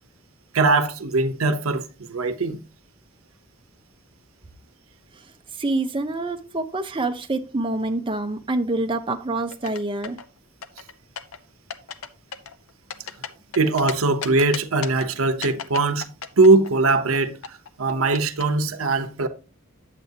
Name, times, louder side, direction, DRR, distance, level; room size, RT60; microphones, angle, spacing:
voice 1, 0.5-2.6 13.6-16.1 16.4-17.4 17.8-19.3, right 3 dB, 85° right, 0.9 m, -20 dB
voice 2, 5.6-10.2, right 2 dB, 25° right, 0.7 m, -26 dB
sound 1, 9.5-10.3 10.6-11.4 11.7-12.1 12.3-13.9 14.2-15.1 15.4-17.2 17.4-18.4, left 7 dB, 85° left, 0.8 m, -34 dB
9.5 x 7.6 x 2.8 m
head